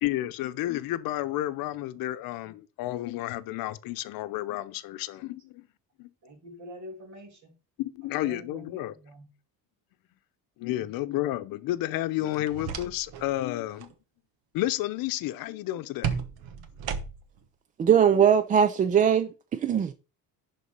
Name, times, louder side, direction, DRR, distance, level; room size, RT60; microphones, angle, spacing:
voice 1, 0.0-5.7 6.0-6.1 7.8-8.9 10.6-13.9 14.5-16.2 17.9-18.0, left 15 dB, 70° left, 0.8 m, -31 dB
voice 2, 6.2-7.6 8.2-9.3, equal, 50° right, 2.8 m, -45 dB
sound 1, 12.3-13.3 13.6-13.9 16.0-17.4, right 7 dB, 75° right, 1.3 m, -34 dB
voice 3, 17.8-19.9, right 8 dB, 25° right, 0.3 m, -21 dB
11.0 x 4.0 x 5.3 m
cardioid pair, 155°, 36 cm